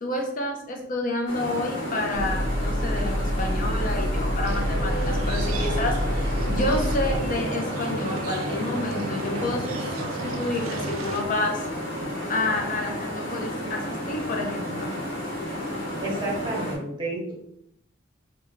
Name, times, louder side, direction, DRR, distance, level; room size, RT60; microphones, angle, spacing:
voice 1, 0.0-11.6 12.3-15.0, left 2 dB, 40° left, 3 dB, 0.5 m, -29 dB
sound 1, 1.3-16.7, equal, 55° left, 1.1 m, -32 dB
sound 2, 2.1-7.2, equal, 80° left, 0.7 m, -27 dB
sound 3, 4.4-11.2, right 3 dB, 85° right, 0.4 m, -34 dB
voice 2, 16.0-17.3, right 2 dB, 20° right, -3 dB, 1.0 m, -30 dB
3.5 x 2.2 x 3.2 m, 0.76 s
head